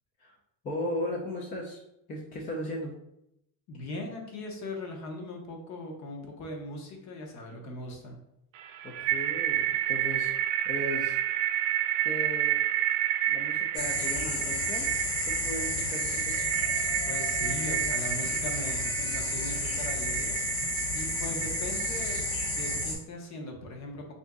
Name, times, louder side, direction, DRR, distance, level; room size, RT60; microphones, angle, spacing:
voice 1, 0.6-1.8 2.1-2.9 3.8-3.9 8.8-10.3 10.6-11.2 12.0-12.6 13.3-14.9 15.2-16.4, left 1 dB, 20° left, -2 dB, 0.3 m, -36 dB
voice 2, 3.7-8.2 17.1-20.4 20.9-22.3 22.6-24.1, left 1 dB, 45° left, 2 dB, 0.8 m, -39 dB
sound 1, 8.6-22.9, right 12 dB, 85° right, 0.5 m, -31 dB
sound 2, 13.7-22.9, left 2 dB, 70° left, 1.4 m, -32 dB
3.8 x 2.6 x 3.4 m, 0.80 s
cardioid pair, 170°, 40 cm